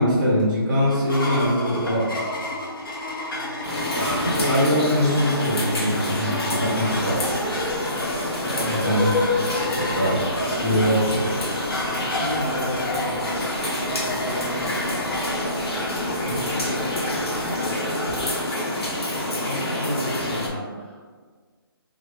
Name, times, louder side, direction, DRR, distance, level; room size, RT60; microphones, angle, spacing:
voice 1, 0.0-2.1 3.9-7.2 8.7-9.1 9.7-10.2 10.6-11.5 16.3-16.9, equal, 5° right, -8 dB, 0.8 m, -23 dB
sound 1, 0.9-18.7, left 2 dB, 60° left, 0.7 m, -30 dB
sound 2, 3.6-20.5, left 1 dB, 85° left, 0.9 m, -28 dB
sound 3, 6.8-17.8, right 2 dB, 40° right, 0.3 m, -39 dB
voice 2, 8.3-8.9 11.9-13.4 13.9-14.6 16.2-17.2 17.5-17.9 19.4-21.0, equal, 30° left, -3 dB, 0.5 m, -33 dB
3.1 x 2.2 x 3.2 m, 1.5 s
hypercardioid pair, 175°, 13 cm